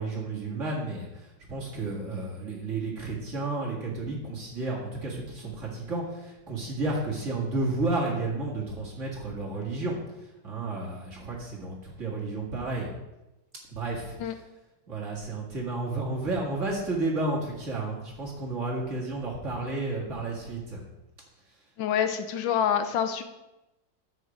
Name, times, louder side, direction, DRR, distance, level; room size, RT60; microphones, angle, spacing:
voice 1, 0.0-10.0 10.4-12.9 13.7-14.3 14.9-20.8, right 2 dB, 40° right, -3 dB, 2.0 m, -32 dB
voice 2, 21.8-23.2, left 8 dB, 80° left, 9 dB, 1.4 m, -26 dB
7.1 x 6.5 x 5.0 m, 0.97 s
omnidirectional pair, 2.1 m